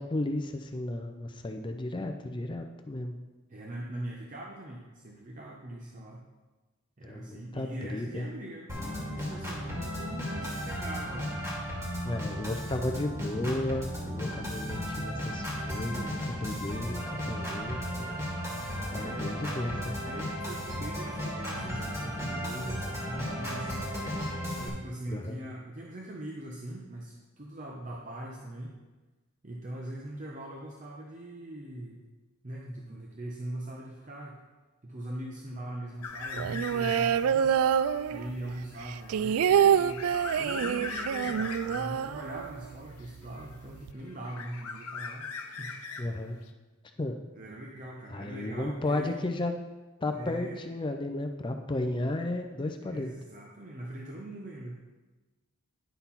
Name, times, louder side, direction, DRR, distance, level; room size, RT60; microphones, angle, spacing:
voice 1, 0.0-3.1 7.0-8.3 12.0-18.2 18.9-19.9 25.1-25.4 46.0-46.4 47.0-47.2 48.1-49.5 50.0-53.1, left 1 dB, 20° left, 5 dB, 0.4 m, -34 dB
voice 2, 3.5-6.2 7.0-11.3 18.0-18.2 18.9-19.3 20.1-23.9 24.6-28.8 29.4-32.0 32.4-34.4 34.8-37.6 38.1-45.7 47.3-49.1 50.1-50.6 52.8-55.0, right 1 dB, 35° right, -2 dB, 0.7 m, -41 dB
Organ, 8.7-24.7, equal, 15° right, 1.9 m, -35 dB
sound 1, 36.0-37.3 37.7-42.0 43.0-43.8 44.1-46.5, left 4 dB, 85° left, 0.8 m, -40 dB
sound 2, 36.3-38.5 38.8-42.8 43.0-43.1 43.4-43.9, right 8 dB, 80° right, 0.3 m, -26 dB
10.5 x 4.0 x 5.6 m, 1.2 s
head